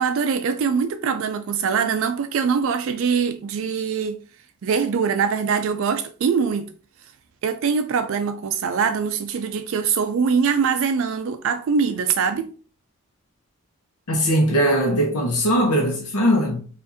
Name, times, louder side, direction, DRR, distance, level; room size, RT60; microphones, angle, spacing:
voice 1, 0.0-4.2 4.6-6.7 7.4-12.5, right 6 dB, 65° right, 0.3 m, -23 dB
voice 2, 14.1-16.7, equal, 85° left, 0.8 m, -20 dB
4.8 x 2.5 x 2.6 m
head